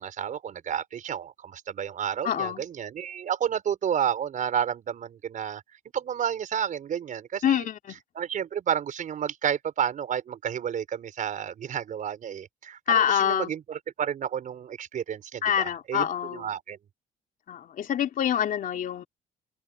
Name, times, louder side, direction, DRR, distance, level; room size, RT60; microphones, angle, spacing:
voice 1, 0.0-5.6 5.9-7.7 8.1-16.8, right 9 dB, 50° right, 5.0 m, -31 dB
voice 2, 2.2-2.6 7.4-8.0 12.9-13.5 15.4-16.5 17.5-19.0, left 9 dB, 55° left, 3.3 m, -26 dB
open air
cardioid pair, 110°, 17 cm